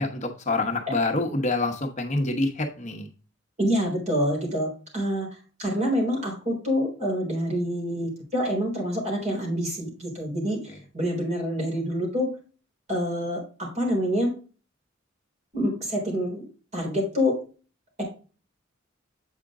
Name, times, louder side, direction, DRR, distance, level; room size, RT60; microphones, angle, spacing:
voice 1, 0.0-3.1, left 2 dB, 40° left, 4 dB, 0.9 m, -26 dB
voice 2, 3.6-5.3 5.6-12.3 12.9-14.3 15.5-17.4 18.0-18.1, equal, 35° right, -1 dB, 3.7 m, -27 dB
8.2 x 5.1 x 3.6 m, 0.36 s
head